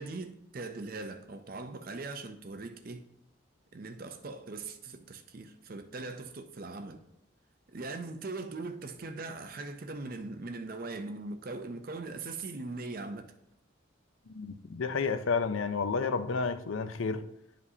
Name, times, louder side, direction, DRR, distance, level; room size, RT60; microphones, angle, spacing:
voice 1, 0.0-3.0 3.7-7.0 7.7-13.4, right 3 dB, 45° right, 0.6 m, -40 dB
voice 2, 14.3-17.2, left 4 dB, 75° left, 0.5 m, -31 dB
11.0 x 5.1 x 2.8 m
head